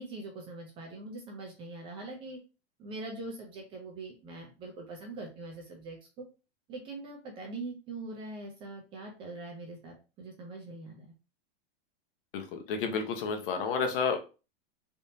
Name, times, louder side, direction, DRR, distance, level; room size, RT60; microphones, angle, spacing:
voice 1, 0.0-2.4 2.8-6.2 6.7-11.1, right 2 dB, 15° right, 1 dB, 0.4 m, -42 dB
voice 2, 12.3-14.2, left 5 dB, 60° left, 5 dB, 0.9 m, -31 dB
3.5 x 2.6 x 2.7 m, 0.32 s
supercardioid pair, 165°, 31 cm